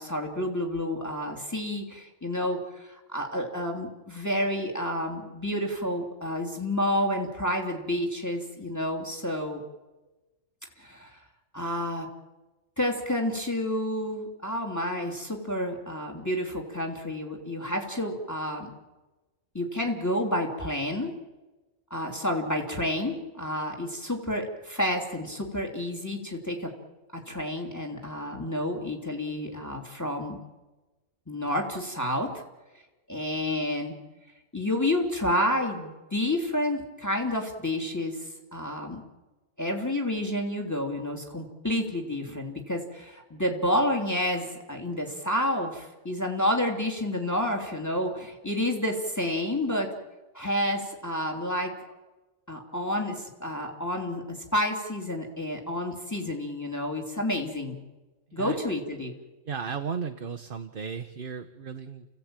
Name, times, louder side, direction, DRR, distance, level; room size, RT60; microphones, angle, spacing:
voice 1, 0.0-9.6 10.8-11.2 11.5-12.1 12.8-18.7 19.5-21.1 21.9-26.7 27.1-30.4 31.3-32.4 33.1-33.9 34.5-39.0 39.6-49.9 50.3-51.7 52.5-57.8 58.3-59.1, left 1 dB, 10° left, 2 dB, 3.1 m, -30 dB
voice 2, 59.5-62.1, right 6 dB, 45° right, 8 dB, 1.1 m, -35 dB
29.5 x 16.5 x 9.0 m, 1.1 s
omnidirectional pair, 1.4 m